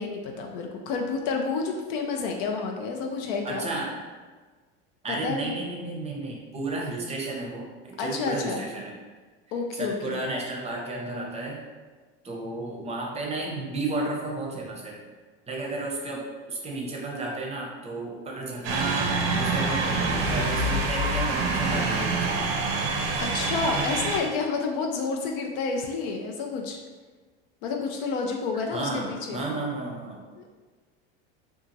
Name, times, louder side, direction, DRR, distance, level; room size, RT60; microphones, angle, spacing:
voice 1, 0.0-3.7 5.1-5.5 8.0-8.7 9.5-10.2 23.2-26.8 27.6-29.5 30.4-30.5, left 4 dB, 70° left, 2 dB, 0.5 m, -30 dB
voice 2, 3.4-4.0 5.0-9.0 9.7-11.6 12.2-15.0 15.5-22.4 28.7-30.2, right 2 dB, 20° right, -2 dB, 0.6 m, -33 dB
sound 1, 18.6-24.2, right 3 dB, 80° right, 0.6 m, -26 dB
2.8 x 2.3 x 2.5 m, 1.4 s
supercardioid pair, 105°, 29 cm